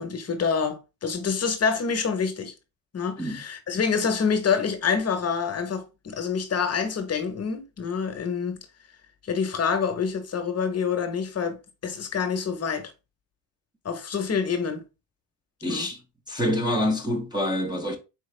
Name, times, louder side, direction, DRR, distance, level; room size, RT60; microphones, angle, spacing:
voice 1, 0.0-2.5 2.9-8.6 9.2-12.9 13.8-14.8 15.6-15.9, left 6 dB, 35° left, 1.0 m, -27 dB
voice 2, 15.6-16.0 16.3-18.0, left 1 dB, 10° right, 0.8 m, -26 dB
4.5 x 3.2 x 3.2 m
supercardioid pair, 95°, 45 cm